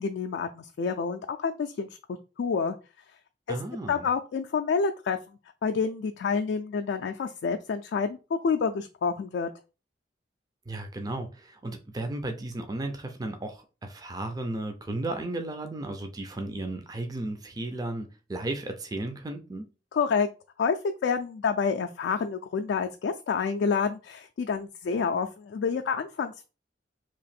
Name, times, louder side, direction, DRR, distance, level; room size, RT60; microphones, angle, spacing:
voice 1, 0.0-1.9 2.4-2.8 3.5-3.6 3.9-5.2 5.6-8.2 8.4-9.5 19.9-20.3 20.6-26.4, left 5 dB, 70° left, 0.3 m, -28 dB
voice 2, 3.5-4.1 10.7-19.7, right 2 dB, 20° right, 0.4 m, -34 dB
2.9 x 2.5 x 4.2 m
head